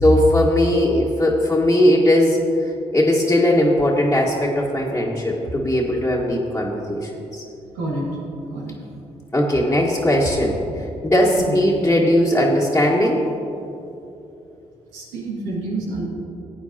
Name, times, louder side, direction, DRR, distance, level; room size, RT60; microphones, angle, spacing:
voice 1, 0.0-2.4 2.9-7.4 9.3-10.6 11.0-13.2, left 1 dB, 15° left, -6 dB, 1.7 m, -18 dB
voice 2, 7.7-8.1 8.5-8.7 11.5-11.6 14.9-16.0, right 2 dB, 90° right, -3 dB, 1.9 m, -28 dB
16.0 x 8.9 x 2.9 m, 2.9 s
hypercardioid pair, 45°, 15 cm